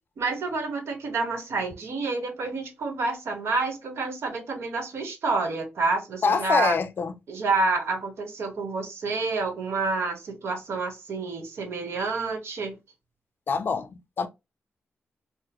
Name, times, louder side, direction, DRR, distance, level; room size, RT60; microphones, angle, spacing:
voice 1, 0.2-6.8 7.3-12.8, right 3 dB, 75° right, 1.1 m, -28 dB
voice 2, 6.2-7.1 13.5-13.9 14.2-14.3, left 5 dB, 50° left, 0.4 m, -24 dB
3.6 x 2.0 x 2.9 m
cardioid pair, 100°, 4 cm